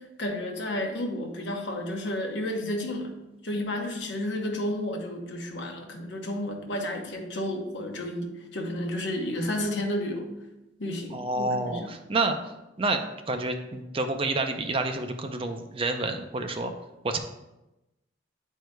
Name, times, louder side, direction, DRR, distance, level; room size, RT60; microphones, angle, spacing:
voice 1, 0.0-3.1 3.4-10.3 10.8-11.9, left 1 dB, 70° left, 3 dB, 0.9 m, -31 dB
voice 2, 11.1-12.4 12.8-16.7 17.0-17.2, right 2 dB, 30° right, 6 dB, 0.4 m, -29 dB
9.1 x 4.6 x 2.2 m, 0.95 s
head